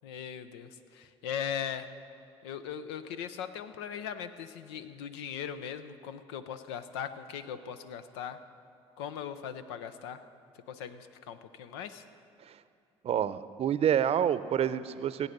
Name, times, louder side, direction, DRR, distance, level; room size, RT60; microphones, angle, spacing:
voice 1, 0.0-1.9 2.4-8.4 9.0-10.2 10.7-12.0, left 8 dB, 85° left, 11 dB, 0.6 m, -39 dB
voice 2, 13.0-15.3, right 9 dB, 50° right, 14 dB, 0.6 m, -28 dB
16.5 x 8.9 x 6.7 m, 2.5 s
hypercardioid pair, 65°, 13 cm